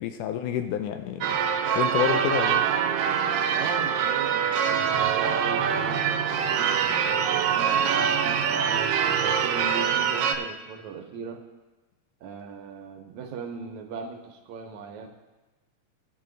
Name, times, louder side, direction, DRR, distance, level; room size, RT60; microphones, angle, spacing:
voice 1, 0.0-1.4 1.8-2.7, left 9 dB, 80° left, 2.0 m, -28 dB
Church bell / Car / Alarm, 1.2-10.4, right 8 dB, 90° right, 2.3 m, -24 dB
voice 2, 3.5-11.4 12.2-15.1, right 5 dB, 70° right, 1.9 m, -39 dB
17.0 x 5.8 x 3.9 m
omnidirectional pair, 3.8 m